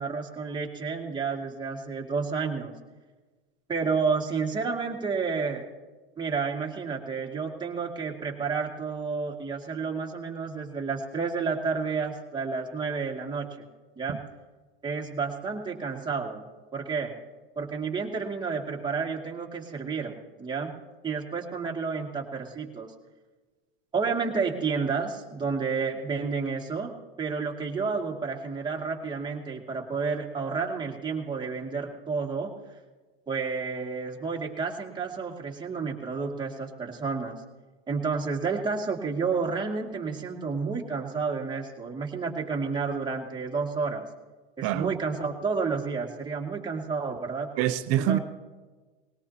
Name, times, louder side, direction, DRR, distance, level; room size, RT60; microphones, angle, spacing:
voice 1, 0.0-2.7 3.7-5.6 6.2-13.7 14.0-14.2 14.8-16.5 16.7-17.1 17.6-20.7 21.0-22.9 23.9-26.9 27.2-32.5 33.3-37.4 37.9-44.0 44.6-47.5 48.0-48.2, right 5 dB, 15° right, 2.2 m, -30 dB
voice 2, 47.6-48.2, right 12 dB, 50° right, 0.9 m, -25 dB
20.5 x 17.5 x 2.9 m
hypercardioid pair, 105°, 30 cm